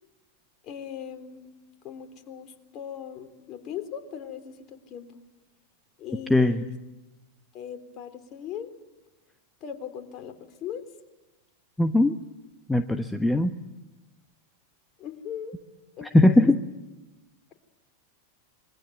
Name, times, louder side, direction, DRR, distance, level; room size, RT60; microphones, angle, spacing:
voice 1, 0.6-1.5 1.8-5.1 6.0-6.7 7.5-8.7 9.6-10.8 15.0-15.5 16.0-16.5, left 8 dB, 35° left, 7 dB, 3.7 m, -39 dB
voice 2, 6.3-6.6 11.8-12.1 12.7-13.5 16.0-16.6, left 1 dB, 5° left, 8 dB, 1.2 m, -20 dB
26.0 x 24.0 x 9.2 m, 1.0 s
figure-of-eight pair, 90°, 0 cm